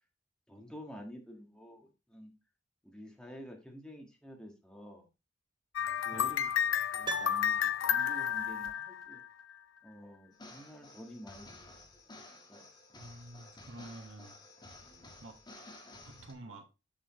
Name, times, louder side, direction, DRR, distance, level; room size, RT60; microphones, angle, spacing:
voice 1, 0.5-2.3 2.8-5.0 5.8-6.5 6.9-9.2 9.8-11.9 12.5-12.6 14.8-15.2, equal, 5° left, 1.6 m, -50 dB
sound 1, 5.8-9.5, left 9 dB, 75° left, 0.5 m, -31 dB
Piano, 7.0-8.3 8.6-8.7, right 2 dB, 25° right, 0.8 m, -41 dB
sound 2, 10.3-16.3, left 2 dB, 20° left, 1.5 m, -53 dB
voice 2, 13.0-14.3 15.2-15.4 16.0-16.7, right 2 dB, 75° right, 1.5 m, -49 dB
7.3 x 6.9 x 3.0 m
head